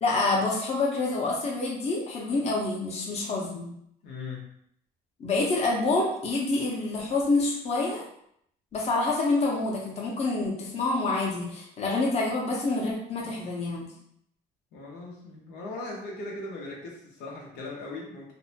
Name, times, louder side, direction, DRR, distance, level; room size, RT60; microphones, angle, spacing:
voice 1, 0.0-3.7 5.2-8.0 8.7-13.9, left 3 dB, 40° left, -3 dB, 0.7 m, -27 dB
voice 2, 4.0-4.5 14.7-18.3, left 2 dB, 85° left, -3 dB, 0.8 m, -39 dB
2.6 x 2.1 x 2.7 m, 0.71 s
cardioid pair, 110°, 17 cm